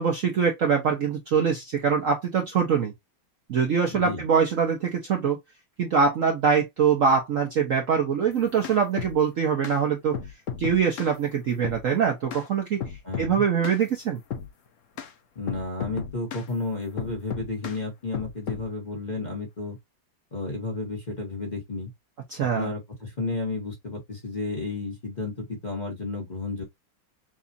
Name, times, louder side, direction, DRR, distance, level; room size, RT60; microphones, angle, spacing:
voice 1, 0.0-2.9 3.5-5.4 5.8-10.1 10.6-12.8 13.2-14.2 22.3-22.7, right 6 dB, 60° right, 0.9 m, -23 dB
voice 2, 3.9-4.2 13.0-13.4 15.3-19.8 20.3-21.9 22.4-26.6, left 3 dB, 25° left, 1.1 m, -32 dB
sound 1, 8.3-9.2 9.6-9.8 10.1-11.1 11.6-11.8 12.3-12.5 12.8-13.3 13.6-13.8 14.3-14.5 15.0-15.1 15.5-16.5 17.0-17.8 18.1-18.7, left 7 dB, 65° left, 0.7 m, -34 dB
6.1 x 2.4 x 2.6 m
omnidirectional pair, 2.2 m